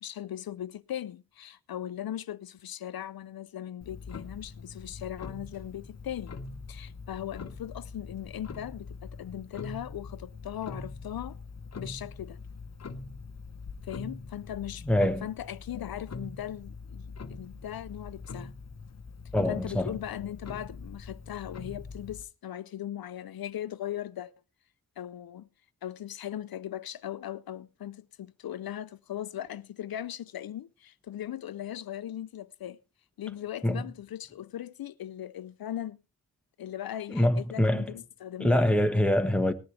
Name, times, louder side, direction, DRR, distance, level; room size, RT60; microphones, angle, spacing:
voice 1, 0.0-6.4 6.7-11.4 11.8-12.4 13.8-14.9 15.2-18.5 19.5-24.3 25.0-25.5 25.8-32.8 33.2-36.0 36.6-38.6, left 11 dB, 75° left, 0.6 m, -39 dB
Clock, 3.8-22.2, left 4 dB, 45° left, 1.0 m, -43 dB
voice 2, 14.9-15.3 19.3-20.0 33.6-33.8 37.1-37.9 38.4-39.5, left 1 dB, 5° left, 1.1 m, -25 dB
19.0 x 10.5 x 3.3 m
wide cardioid pair, 140°, 36 cm